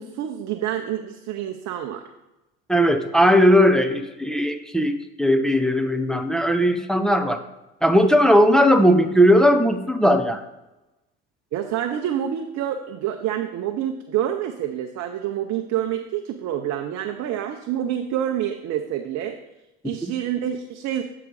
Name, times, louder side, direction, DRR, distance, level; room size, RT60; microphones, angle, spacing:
voice 1, 0.0-2.0 11.5-19.4 19.8-21.0, right 10 dB, 50° right, 4 dB, 0.7 m, -27 dB
voice 2, 2.7-7.4 7.8-10.4, equal, ahead, 7 dB, 0.5 m, -18 dB
8.1 x 3.9 x 4.7 m, 0.99 s
hypercardioid pair, 80°, 35 cm